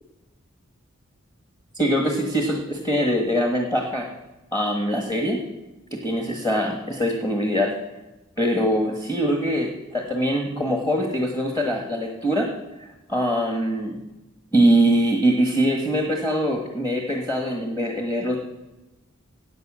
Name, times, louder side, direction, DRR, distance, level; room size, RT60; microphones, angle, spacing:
voice 1, 1.7-4.1 4.5-5.4 5.9-7.7 8.4-12.5 12.8-14.0 14.5-18.4, equal, 15° left, 1 dB, 1.4 m, -23 dB
17.5 x 7.5 x 6.2 m, 1.0 s
head